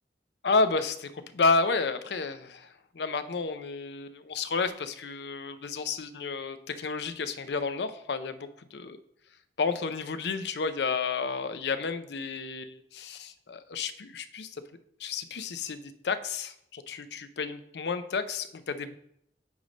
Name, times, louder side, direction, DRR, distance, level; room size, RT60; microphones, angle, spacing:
voice 1, 0.4-8.5 9.6-14.6 15.0-19.0, left 4 dB, 75° left, 11 dB, 0.5 m, -31 dB
9.2 x 3.2 x 5.0 m, 0.72 s
head